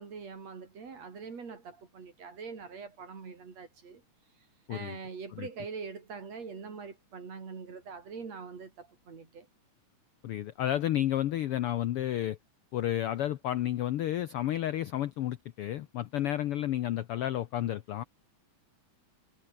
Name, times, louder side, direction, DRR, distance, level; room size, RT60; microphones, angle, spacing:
voice 1, 0.0-4.0 4.7-9.5, right 5 dB, 55° right, 4.9 m, -43 dB
voice 2, 10.2-12.4 12.7-18.0, left 12 dB, 90° left, 1.2 m, -31 dB
omnidirectional pair, 3.6 m